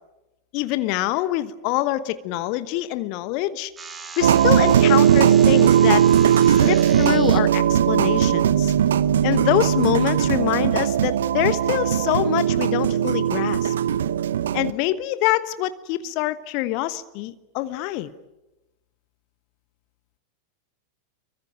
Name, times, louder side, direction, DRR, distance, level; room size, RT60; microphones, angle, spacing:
voice 1, 0.5-3.7 4.2-6.0 6.5-8.7 9.2-13.7 14.5-18.1, left 15 dB, 45° left, 14 dB, 1.2 m, -25 dB
sound 1, 3.8-7.4, right 4 dB, 15° right, 2.4 m, -38 dB
sound 2, 4.2-14.7, right 9 dB, 60° right, 0.9 m, -18 dB
25.5 x 24.0 x 9.0 m, 1.0 s
figure-of-eight pair, 90°, 0 cm